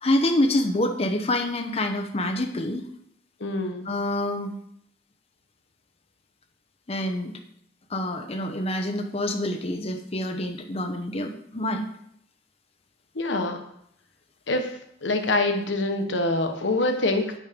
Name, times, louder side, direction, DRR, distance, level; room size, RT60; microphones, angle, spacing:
voice 1, 0.0-2.9 3.8-4.5 6.9-7.3 7.9-11.9, left 1 dB, 35° left, 3 dB, 0.9 m, -26 dB
voice 2, 3.4-3.9 13.1-13.6 14.5-17.3, left 2 dB, 80° left, 5 dB, 1.2 m, -25 dB
9.5 x 6.3 x 5.1 m, 0.71 s
head